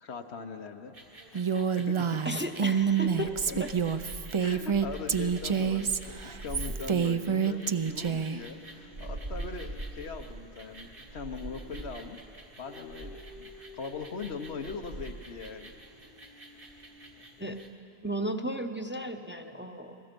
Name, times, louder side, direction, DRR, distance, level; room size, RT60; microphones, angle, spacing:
voice 1, 0.0-1.0 1.3-2.3 3.5-3.8 4.4-12.2 12.6-15.8, left 5 dB, 80° left, 5 dB, 1.3 m, -41 dB
sound 1, 0.9-17.7, right 2 dB, 55° right, 1.9 m, -45 dB
Female speech woman speaking, 1.3-8.4, right 7 dB, 40° right, 0.5 m, -28 dB
voice 2, 2.2-3.3 3.6-3.7 17.4-17.6 18.0-20.0, equal, 10° right, 5 dB, 0.8 m, -34 dB
sound 2, 5.7-7.5 8.0-10.3 10.9-12.1 12.6-14.8 15.5-17.1, left 1 dB, 85° right, 6.7 m, -53 dB
30.0 x 21.0 x 5.3 m, 2.9 s
omnidirectional pair, 1.1 m